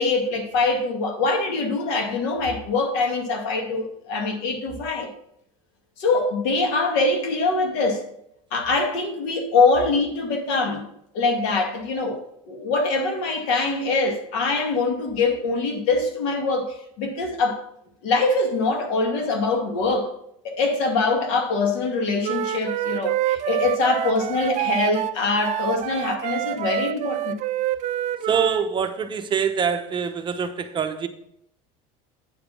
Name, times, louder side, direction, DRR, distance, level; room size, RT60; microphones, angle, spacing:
voice 1, 0.0-5.1 6.0-8.1 8.5-10.9 11.1-17.6 18.0-20.1 20.4-27.3, left 3 dB, 80° left, 2.1 m, -23 dB
Wind instrument woodwind instrument, 22.2-28.7, right 13 dB, 50° right, 0.4 m, -27 dB
voice 2, 28.3-31.1, right 7 dB, 30° right, 0.8 m, -24 dB
9.0 x 5.0 x 5.7 m
supercardioid pair, 125°, 16 cm